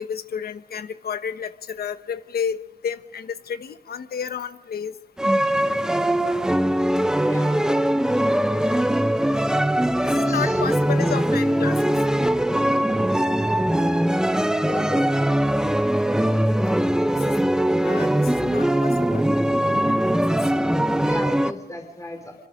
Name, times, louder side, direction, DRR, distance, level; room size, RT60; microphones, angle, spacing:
voice 1, 0.0-4.9 10.1-11.9 17.3-17.4 17.8-19.3 19.6-20.0, left 7 dB, 80° left, 11 dB, 1.1 m, -31 dB
sound 1, 5.2-21.5, right 1 dB, 5° right, 0.8 m, -21 dB
voice 2, 7.2-7.7 10.2-10.6 14.6-15.1 16.4-16.8 21.0-22.3, left 2 dB, 20° left, 4 dB, 3.8 m, -35 dB
25.0 x 24.5 x 5.2 m, 1.0 s
wide cardioid pair, 150°, 16 cm